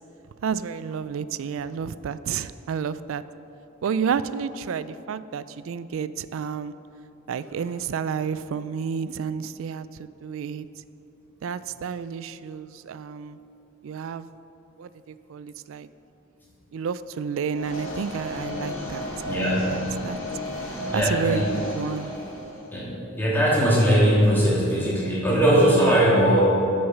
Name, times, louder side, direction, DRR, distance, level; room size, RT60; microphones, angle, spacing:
voice 1, 0.4-3.2 3.8-6.7 7.3-10.7 11.4-13.4 13.8-14.3 14.8-15.9 16.7-20.2 20.9-22.1, right 6 dB, 70° right, 15 dB, 0.3 m, -30 dB
sound 1, 17.5-22.7, left 1 dB, 70° left, 2.2 m, -33 dB
voice 2, 19.2-19.8 20.9-21.6 22.7-26.6, equal, 10° left, -7 dB, 2.4 m, -20 dB
9.6 x 6.3 x 5.9 m, 3.0 s
head